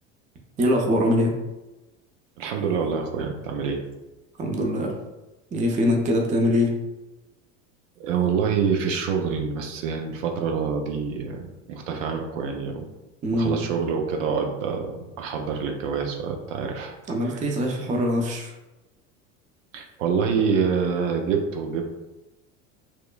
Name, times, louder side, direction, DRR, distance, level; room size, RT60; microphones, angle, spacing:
voice 1, 0.6-1.3 4.4-4.9 5.5-6.8 13.2-13.6 17.1-18.5, left 1 dB, 20° right, 1 dB, 0.4 m, -23 dB
voice 2, 2.4-3.8 8.0-12.8 13.3-16.9 17.2-17.4 19.7-21.8, right 6 dB, 75° right, 3 dB, 0.5 m, -26 dB
2.9 x 2.1 x 2.2 m, 1.0 s
hypercardioid pair, 85°, 38 cm